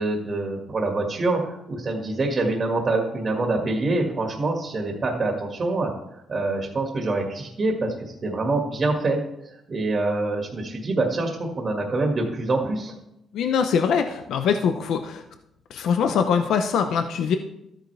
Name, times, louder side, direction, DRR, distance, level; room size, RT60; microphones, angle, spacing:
voice 1, 0.0-5.9 6.3-12.9, right 2 dB, 40° right, 1 dB, 1.9 m, -25 dB
voice 2, 13.3-15.2 15.7-17.4, left 6 dB, 75° left, 7 dB, 0.7 m, -23 dB
13.0 x 9.1 x 3.4 m, 0.84 s
cardioid pair, 90°, 0 cm